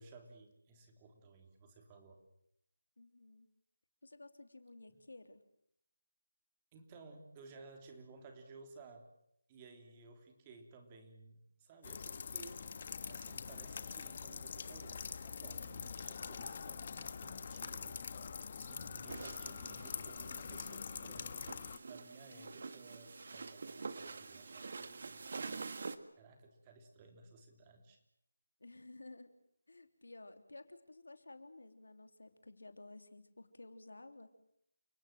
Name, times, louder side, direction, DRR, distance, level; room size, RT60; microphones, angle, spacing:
voice 1, 0.0-2.2 6.7-9.1 9.5-12.7 13.1-21.5 21.8-25.7 26.2-28.0, right 3 dB, 20° right, 5 dB, 3.4 m, -57 dB
voice 2, 3.0-3.5 4.0-5.4 19.0-19.4 22.3-22.7 28.6-29.3 29.7-34.3, left 2 dB, 80° left, 8 dB, 3.3 m, -54 dB
sound 1, 11.8-21.8, left 6 dB, 40° left, 1.5 m, -44 dB
sound 2, 19.1-26.0, right 4 dB, 50° right, 1.8 m, -47 dB
30.0 x 18.0 x 7.5 m, 0.74 s
figure-of-eight pair, 165°, 0 cm